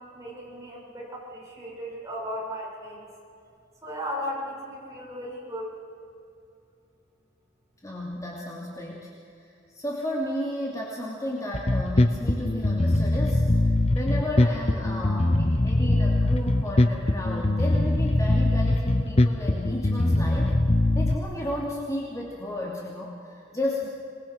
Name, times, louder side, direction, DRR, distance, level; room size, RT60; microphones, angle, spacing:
voice 1, 0.0-3.1 3.8-5.8, equal, 20° right, -4 dB, 7.4 m, -36 dB
voice 2, 7.8-9.1 9.4-13.7 13.9-20.5 20.9-23.9, left 1 dB, 15° left, -3 dB, 2.8 m, -33 dB
Bass guitar, 11.5-21.1, left 1 dB, 35° left, 0.9 m, -22 dB
27.0 x 21.0 x 6.1 m, 2.5 s
head